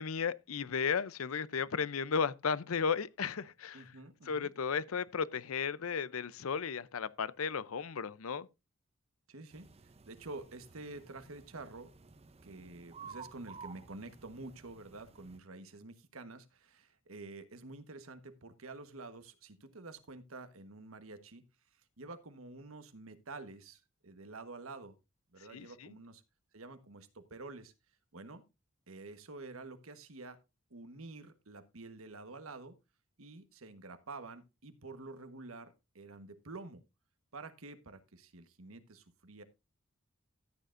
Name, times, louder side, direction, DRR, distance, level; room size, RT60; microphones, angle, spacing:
voice 1, 0.0-3.9 4.2-8.5 25.5-25.9, left 6 dB, 85° left, 0.6 m, -34 dB
voice 2, 3.7-4.5 9.3-11.9 12.4-21.4 22.0-24.9 25.3-26.2 26.5-27.7 28.1-28.4 28.9-30.4 30.7-32.8 33.2-36.8 37.3-39.4, right 3 dB, 80° right, 1.3 m, -49 dB
sound 1, 9.5-15.4, right 5 dB, 30° right, 0.6 m, -54 dB
14.0 x 9.2 x 2.6 m
head